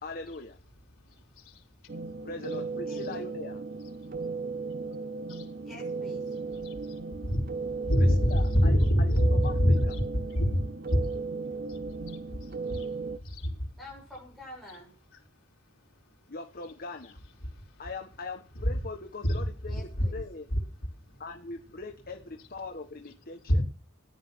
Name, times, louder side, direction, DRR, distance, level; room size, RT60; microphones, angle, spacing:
voice 1, 0.0-0.6 2.2-3.6 8.0-9.2 9.4-9.5 9.8-9.9 16.3-17.2 17.8-20.5 21.2-23.6, left 3 dB, 45° left, 5 dB, 1.4 m, -41 dB
sound 1, 1.9-13.2, right 4 dB, 45° right, 0.8 m, -36 dB
voice 2, 2.9-3.3 5.6-6.2 13.8-14.9 19.7-20.2, left 1 dB, ahead, -5 dB, 6.7 m, -47 dB
voice 3, 7.8-9.9 10.1-11.2 11.7-12.2 12.7-12.9 13.2-13.5 19.2-19.4 20.0-20.1 20.5-20.6 23.5-23.6, equal, 75° left, -3 dB, 4.2 m, -25 dB
14.5 x 10.0 x 6.3 m, 0.41 s
head